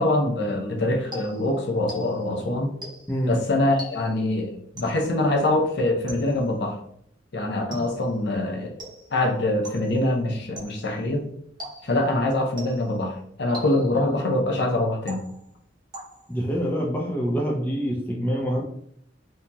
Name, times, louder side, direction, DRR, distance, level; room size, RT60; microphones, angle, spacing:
voice 1, 0.0-2.7 3.3-6.8 7.3-8.7 9.1-11.2 11.8-15.2, left 1 dB, 60° left, 2 dB, 0.6 m, -24 dB
sound 1, 1.1-2.4 2.8-3.2 3.8-4.3 4.8-5.2 6.1-6.6 7.7-8.2 8.8-9.2 9.6-10.0 10.6-11.0 11.6-12.1 12.6-13.0 13.5-14.1 15.1-15.6 15.9-16.4, right 1 dB, 25° right, 0.8 m, -41 dB
voice 2, 16.3-18.6, equal, 10° left, -2 dB, 0.4 m, -25 dB
2.8 x 2.7 x 2.3 m, 0.67 s
head